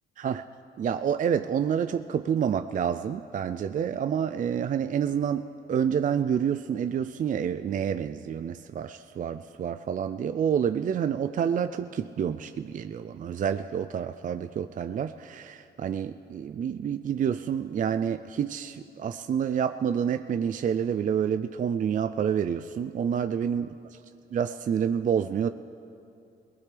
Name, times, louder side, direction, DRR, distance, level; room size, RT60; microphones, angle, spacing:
voice 1, 0.8-23.7 24.3-25.5, right 8 dB, 40° right, 10 dB, 0.4 m, -28 dB
21.5 x 19.5 x 3.4 m, 2.7 s
cardioid pair, 90°, 20 cm